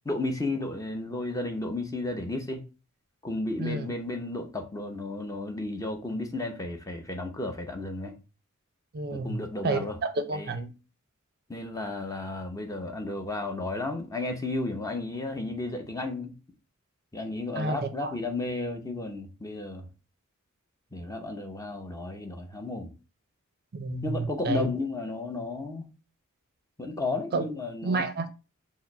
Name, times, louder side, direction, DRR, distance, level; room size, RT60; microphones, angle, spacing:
voice 1, 0.0-2.6 3.2-8.1 9.1-10.0 10.3-10.7 11.5-16.3 17.1-19.9 20.9-22.9 24.0-25.9 26.8-28.0, left 2 dB, 15° left, 0.7 m, -33 dB
voice 2, 8.9-10.7 17.6-18.1 23.7-24.7 27.3-27.4 27.8-28.3, right 3 dB, 45° right, 0.5 m, -30 dB
4.6 x 2.0 x 4.4 m
head